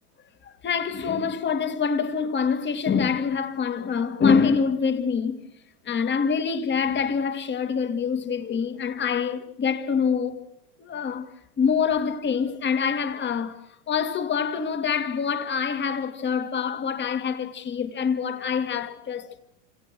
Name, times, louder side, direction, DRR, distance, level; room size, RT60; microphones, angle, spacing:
voice 1, 0.4-5.4 5.8-10.5 10.8-19.4, left 6 dB, 20° left, 2.5 m, -25 dB
29.5 x 27.0 x 6.2 m
supercardioid pair, 130°, 48 cm